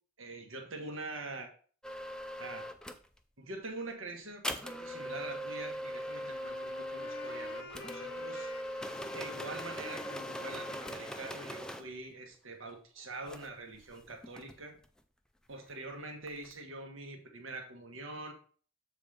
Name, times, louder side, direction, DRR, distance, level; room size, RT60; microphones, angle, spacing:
voice 1, 0.2-1.5 2.4-2.6 3.4-8.5 9.1-14.8 15.5-18.3, right 2 dB, 75° right, 3 dB, 1.5 m, -44 dB
sound 1, 1.8-3.1 4.4-11.9 13.3-13.5 13.7-15.0 16.3-16.6, equal, 5° left, 0.4 m, -40 dB
Wind instrument woodwind instrument, 5.8-12.0, left 4 dB, 55° left, 0.8 m, -51 dB
7.2 x 3.8 x 5.0 m, 0.43 s
head